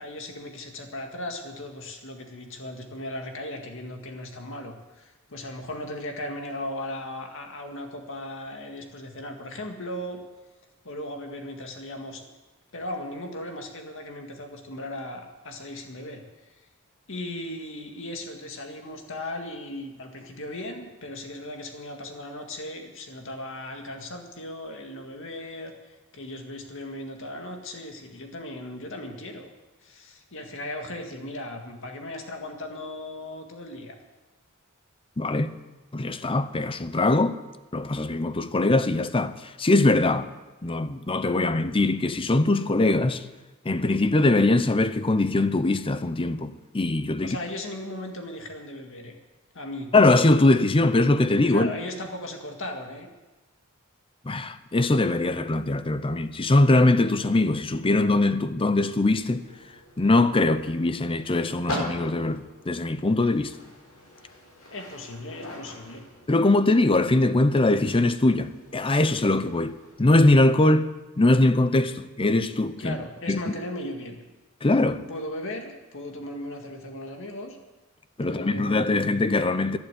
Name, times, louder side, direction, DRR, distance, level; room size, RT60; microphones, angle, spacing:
voice 1, 0.0-10.2 10.8-12.2 12.7-16.2 17.1-29.5 29.8-34.0 47.2-49.1 49.5-49.9 51.5-53.1 64.7-66.0 72.8-74.2 75.1-77.6 78.2-79.1, left 1 dB, 65° left, 2.0 m, -37 dB
voice 2, 35.2-35.5 35.9-37.4 37.7-40.3 40.6-43.2 43.6-47.4 49.9-51.7 54.2-59.5 60.0-63.5 66.3-70.9 71.2-73.0 73.3-73.4 74.6-75.0 78.2-79.8, left 2 dB, 25° left, 0.6 m, -22 dB
sound 1, 58.9-70.4, left 1 dB, 85° left, 5.9 m, -42 dB
12.0 x 11.0 x 8.2 m
head